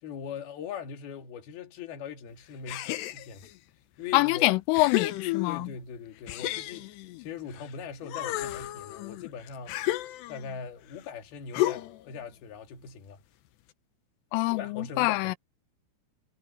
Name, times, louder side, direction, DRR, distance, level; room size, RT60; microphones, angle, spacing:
voice 1, 0.0-3.5 4.0-4.5 5.5-9.8 10.3-13.2 14.5-15.4, left 6 dB, 55° left, 4.0 m, -41 dB
sound 1, 2.7-3.5 4.2-4.3 4.7-5.8 6.3-7.7 8.0-10.6 11.5-12.1, left 15 dB, 75° left, 2.8 m, -33 dB
voice 2, 4.1-5.7 14.3-15.4, left 20 dB, 90° left, 3.3 m, -25 dB
omnidirectional pair, 5.6 m